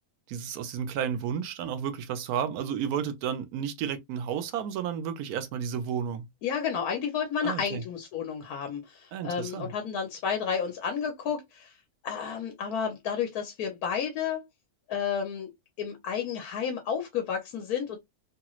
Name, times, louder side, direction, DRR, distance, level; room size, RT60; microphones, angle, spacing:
voice 1, 0.3-6.3 7.4-7.8 9.1-9.7, right 8 dB, 85° right, 1.1 m, -32 dB
voice 2, 6.4-11.7 12.0-14.4 14.9-15.5 15.8-18.0, left 7 dB, 85° left, 1.2 m, -31 dB
3.0 x 2.9 x 2.3 m
omnidirectional pair, 1.6 m